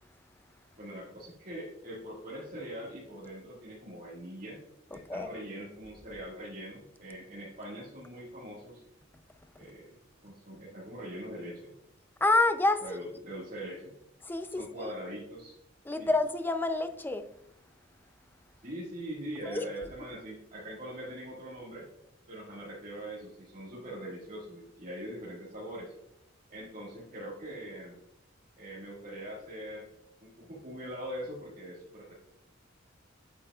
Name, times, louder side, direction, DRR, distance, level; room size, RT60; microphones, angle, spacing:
voice 1, 0.8-4.6 4.9-8.8 9.6-9.9 10.2-11.7 12.8-13.9 14.6-15.6 16.0-16.1 18.6-21.9 22.3-25.9 26.5-28.0 28.6-29.9 30.2-32.1, equal, 45° right, 1.9 m, -42 dB
voice 2, 4.9-5.3 12.2-12.8 14.2-14.9 15.8-17.3 19.4-19.6, left 2 dB, 10° left, 0.5 m, -28 dB
8.6 x 7.7 x 2.4 m
head